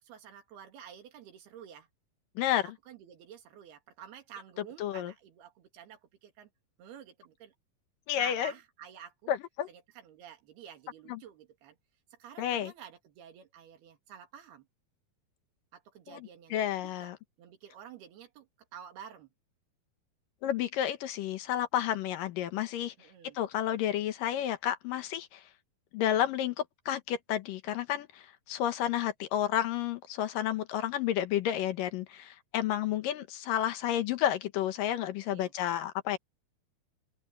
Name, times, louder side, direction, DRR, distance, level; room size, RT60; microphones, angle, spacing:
voice 1, 0.0-1.9 2.5-6.5 6.8-7.5 8.1-9.3 9.7-11.8 12.1-14.7 15.7-17.1 17.4-19.3 23.0-23.4 35.3-35.5, right 9 dB, 90° right, 4.3 m, -50 dB
voice 2, 4.8-5.1 8.1-8.5 9.3-9.7 11.1-11.2 12.4-12.7 16.1-17.2 20.4-22.9 23.4-25.4 25.9-36.2, left 11 dB, 70° left, 2.5 m, -31 dB
open air
omnidirectional pair, 4.4 m